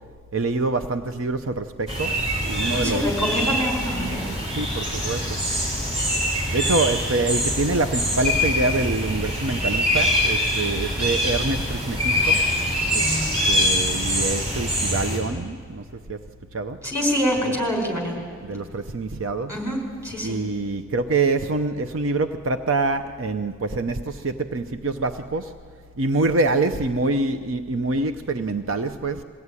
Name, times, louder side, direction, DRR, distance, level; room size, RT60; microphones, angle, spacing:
voice 1, 0.3-2.2 2.4-3.0 4.5-5.4 6.5-12.4 12.9-13.0 13.5-15.8 16.1-16.2 16.5-16.8 18.4-19.5 20.2-25.5 26.0-29.2, right 3 dB, 70° right, 9 dB, 0.7 m, -25 dB
sound 1, 1.9-15.2, equal, 30° right, 5.0 m, -24 dB
voice 2, 2.7-4.3 13.0-13.4 16.8-18.2 19.5-20.4, equal, 15° right, 0 dB, 4.7 m, -26 dB
22.0 x 16.0 x 9.7 m, 2.2 s
head